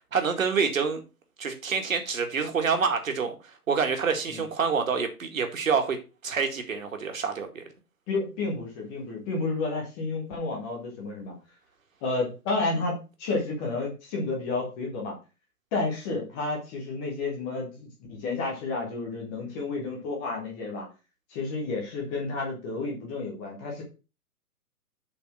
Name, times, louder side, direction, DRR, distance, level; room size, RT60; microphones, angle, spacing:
voice 1, 0.1-1.0 1.4-3.4 3.7-6.0 6.2-7.6, right 5 dB, 60° right, 5 dB, 2.0 m, -27 dB
voice 2, 8.1-11.3 12.0-15.1 15.7-20.9 21.3-23.8, left 3 dB, 5° left, 0 dB, 0.5 m, -31 dB
7.5 x 4.2 x 5.7 m, 0.31 s
figure-of-eight pair, 130°, 45 cm